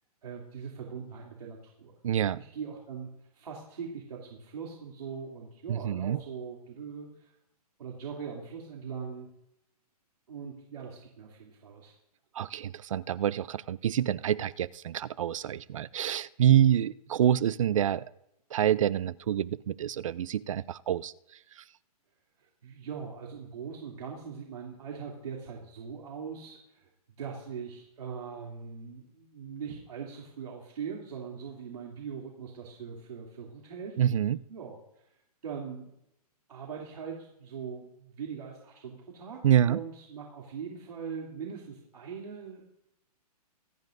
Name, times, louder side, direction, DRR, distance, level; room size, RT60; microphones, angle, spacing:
voice 1, 0.2-1.9 2.3-7.3 7.8-9.3 10.3-11.9 22.4-26.9 27.2-34.0 34.5-34.8 35.4-35.9 36.5-42.7, right 6 dB, 75° right, -3 dB, 2.9 m, -41 dB
voice 2, 2.0-2.4 5.7-6.2 12.4-18.0 18.5-21.1 34.0-34.4 39.4-39.8, right 10 dB, 55° right, 21 dB, 0.4 m, -27 dB
25.5 x 9.7 x 2.6 m, 0.82 s
hypercardioid pair, 165°, 20 cm